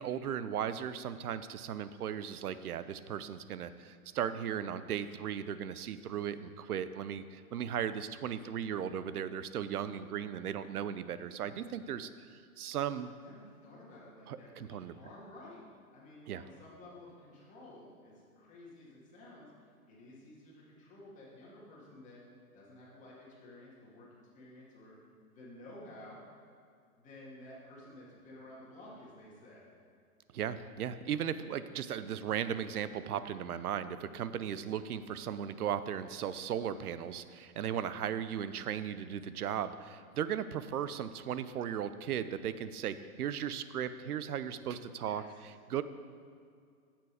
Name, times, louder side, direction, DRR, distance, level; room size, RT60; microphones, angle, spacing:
voice 1, 0.0-12.1 12.6-13.1 14.3-15.0 16.3-16.4 30.3-45.2 45.7-45.8, right 9 dB, 80° right, 13 dB, 0.7 m, -36 dB
voice 2, 8.7-9.0 13.0-15.6 15.9-19.5 19.9-22.2 22.5-25.0 25.3-26.2 27.0-29.7 45.0-45.2, left 1 dB, 15° left, -6 dB, 2.4 m, -53 dB
9.4 x 7.5 x 4.9 m, 2.2 s
hypercardioid pair, 145°, 44 cm